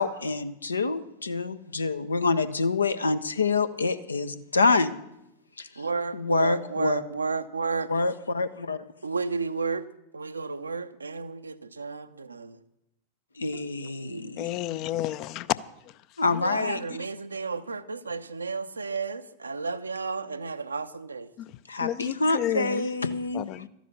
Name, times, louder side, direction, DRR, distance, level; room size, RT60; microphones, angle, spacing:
voice 1, 0.0-4.9 5.6-5.7 6.1-7.0 7.9-8.9 13.4-14.5 16.2-16.8 21.7-23.4, left 3 dB, 75° left, 0.7 m, -26 dB
voice 2, 5.8-7.9 9.0-9.9 10.1-12.6 13.8-14.6 16.4-21.3, right 4 dB, 75° right, 0.6 m, -32 dB
voice 3, 14.4-15.5 15.9-16.0 16.3-16.8 21.4-21.5 21.8-22.8 23.3-23.7, left 13 dB, 40° left, 0.5 m, -32 dB
13.0 x 10.0 x 6.9 m
figure-of-eight pair, 90°, 0 cm